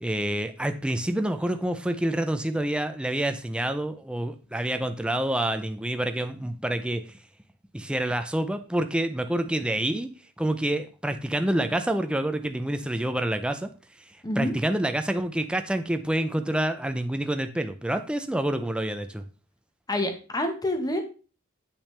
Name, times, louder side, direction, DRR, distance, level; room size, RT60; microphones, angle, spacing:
voice 1, 0.0-7.1 7.7-10.1 10.4-13.7 14.4-19.2, right 1 dB, 5° right, 7 dB, 0.5 m, -27 dB
voice 2, 14.2-14.5 19.9-21.0, left 1 dB, 15° left, 5 dB, 1.2 m, -27 dB
8.4 x 5.9 x 3.3 m, 0.35 s
head